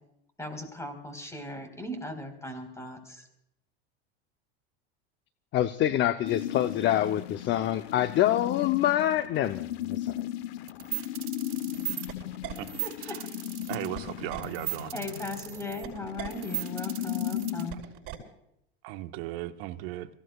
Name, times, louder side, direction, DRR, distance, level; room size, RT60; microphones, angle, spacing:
voice 1, 0.4-3.3 12.8-13.2 14.9-17.8, left 2 dB, 10° left, 4.2 m, -38 dB
voice 2, 5.5-10.3, left 12 dB, 35° left, 0.7 m, -26 dB
sound 1, 6.3-17.7, left 12 dB, 75° left, 1.0 m, -36 dB
sound 2, 10.7-18.2, right 17 dB, 45° right, 6.2 m, -36 dB
voice 3, 13.7-14.9 18.8-20.1, right 15 dB, 65° right, 1.2 m, -36 dB
29.0 x 16.5 x 2.4 m
supercardioid pair, 115°, 31 cm